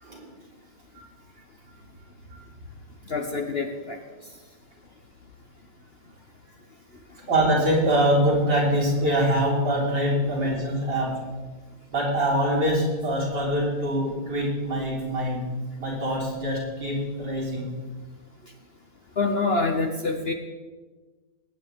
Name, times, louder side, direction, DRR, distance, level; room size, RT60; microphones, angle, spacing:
voice 1, 3.1-4.0 19.2-20.3, left 3 dB, 45° left, 4 dB, 0.8 m, -26 dB
voice 2, 7.3-11.2 11.9-15.5 15.8-17.7, equal, 85° right, -6 dB, 4.5 m, -24 dB
20.0 x 9.2 x 3.6 m, 1.3 s
omnidirectional pair, 1.9 m